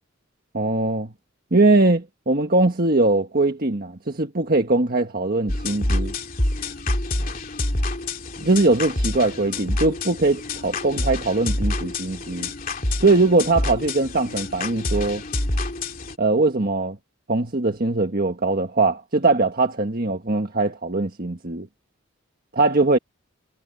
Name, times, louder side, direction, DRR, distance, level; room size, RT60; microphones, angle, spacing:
voice 1, 0.5-1.1 1.5-6.1 8.4-12.5 13.0-15.2 16.2-17.0 17.3-21.7 22.5-23.0, right 2 dB, 45° right, 1.5 m, -21 dB
sound 1, 5.5-16.1, left 2 dB, 40° left, 2.8 m, -27 dB
head